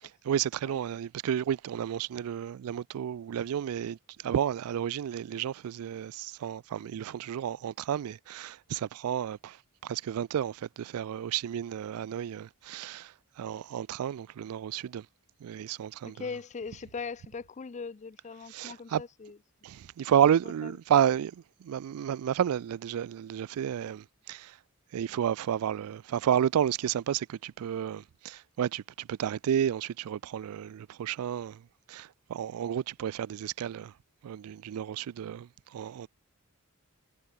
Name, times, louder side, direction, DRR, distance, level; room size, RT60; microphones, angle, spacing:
voice 1, 0.0-15.1 15.4-16.2 18.5-19.0 19.6-24.6 24.9-33.9 34.2-36.1, right 9 dB, 75° right, 0.3 m, -31 dB
voice 2, 16.0-19.4 20.6-20.7, left 5 dB, 30° left, 0.4 m, -40 dB
head